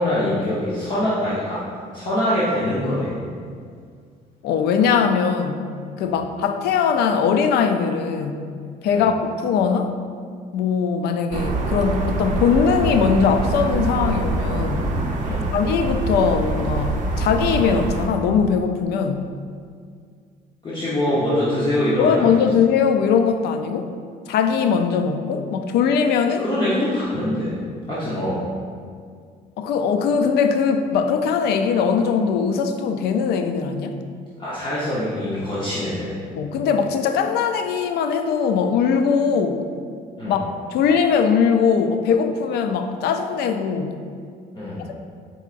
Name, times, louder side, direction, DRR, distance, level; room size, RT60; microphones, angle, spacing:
voice 1, 0.0-1.6 1.9-3.2 6.0-6.1 8.9-9.1 15.2-15.5 20.6-22.3 26.3-27.6 27.9-28.5 34.4-36.2 40.2-40.4 44.5-44.8, left 1 dB, 30° left, -9 dB, 0.9 m, -24 dB
voice 2, 4.4-5.7 6.0-8.4 8.8-9.9 10.5-15.0 15.5-19.2 22.0-23.9 24.3-26.4 29.6-34.0 36.4-39.7 40.3-40.4 40.7-43.9, left 6 dB, 75° left, 7 dB, 0.4 m, -20 dB
sound 1, 11.3-18.1, right 2 dB, 50° right, 0.6 m, -24 dB
4.6 x 4.2 x 2.5 m, 2.1 s
cardioid pair, 110°, 17 cm